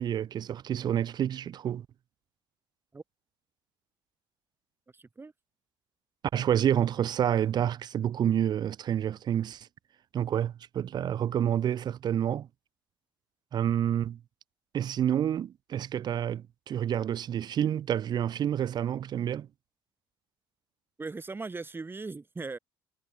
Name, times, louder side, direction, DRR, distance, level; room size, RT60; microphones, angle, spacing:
voice 1, 0.0-1.9 6.3-9.7 10.1-12.5 13.5-14.2 14.7-19.5, right 10 dB, 40° right, 0.3 m, -28 dB
voice 2, 4.9-5.3 21.0-22.6, right 3 dB, 20° right, 0.9 m, -39 dB
hypercardioid pair, 55°, 11 cm